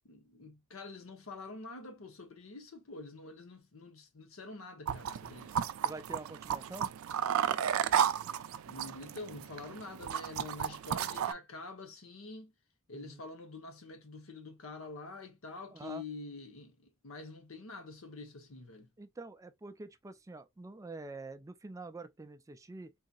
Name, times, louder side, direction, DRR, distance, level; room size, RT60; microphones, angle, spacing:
voice 1, 0.0-5.7 8.7-12.5 12.9-18.9, left 3 dB, 85° left, 0.9 m, -47 dB
sound 1, 4.9-11.3, right 8 dB, 90° right, 0.4 m, -33 dB
voice 2, 5.8-6.9 12.9-13.2 15.7-16.0 19.0-22.9, right 3 dB, 15° right, 0.3 m, -46 dB
3.9 x 2.7 x 2.3 m
head